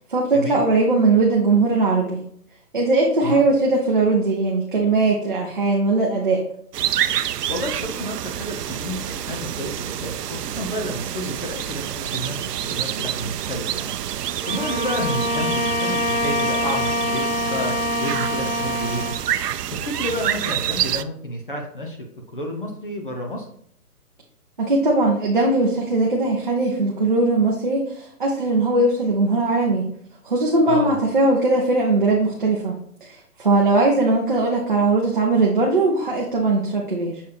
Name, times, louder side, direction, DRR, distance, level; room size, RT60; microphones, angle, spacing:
voice 1, 0.1-2.2 2.7-6.4 24.6-29.9 30.2-32.8 33.0-37.2, right 3 dB, 30° right, -2 dB, 0.7 m, -19 dB
sound 1, 6.7-21.0, right 10 dB, 80° right, 0.5 m, -28 dB
voice 2, 7.5-13.9 14.3-17.7 18.0-19.1 19.7-22.0 22.3-23.5 30.6-31.0, equal, 35° left, 1 dB, 0.7 m, -30 dB
Bowed string instrument, 14.4-19.3, left 1 dB, 50° left, 1.1 m, -25 dB
7.0 x 4.6 x 3.2 m, 0.67 s
hypercardioid pair, 175°, 47 cm